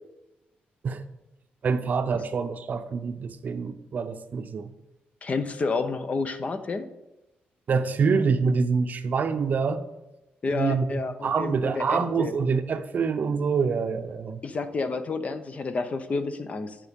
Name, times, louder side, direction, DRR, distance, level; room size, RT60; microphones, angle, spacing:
voice 1, 1.6-4.7 7.7-9.8 10.5-14.4, right 5 dB, 50° right, 10 dB, 0.6 m, -26 dB
voice 2, 5.2-6.9 10.4-12.3 14.4-16.8, left 4 dB, 40° left, 10 dB, 0.8 m, -30 dB
9.7 x 5.2 x 5.3 m, 0.95 s
cardioid pair, 105°, 4 cm